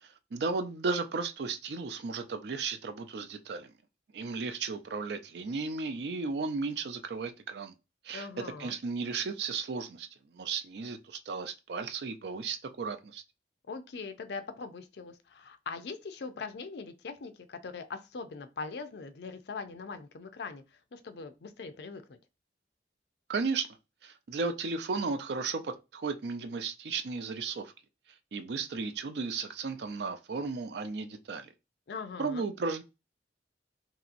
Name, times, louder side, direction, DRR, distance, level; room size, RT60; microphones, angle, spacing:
voice 1, 0.0-3.7 4.1-7.7 8.0-8.3 8.6-10.1 10.3-13.2 23.3-23.7 24.0-27.7 28.3-31.5 32.2-32.8, right 4 dB, 70° right, 0.4 m, -34 dB
voice 2, 8.1-8.8 13.7-22.2 31.9-32.5, left 4 dB, 70° left, 0.4 m, -41 dB
3.0 x 2.7 x 2.5 m
head